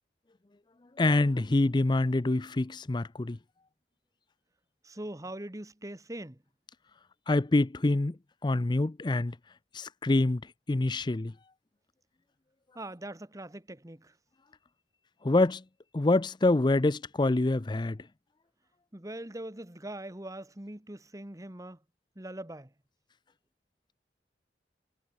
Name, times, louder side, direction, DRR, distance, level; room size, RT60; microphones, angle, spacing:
voice 1, 1.0-3.4 7.3-8.1 8.4-9.3 9.7-10.4 10.7-11.3 15.2-15.6 15.9-18.0, left 2 dB, 25° left, 0.5 m, -26 dB
voice 2, 4.8-6.4 12.7-14.1 18.9-21.8 22.1-22.7, right 1 dB, 20° right, 1.3 m, -42 dB
head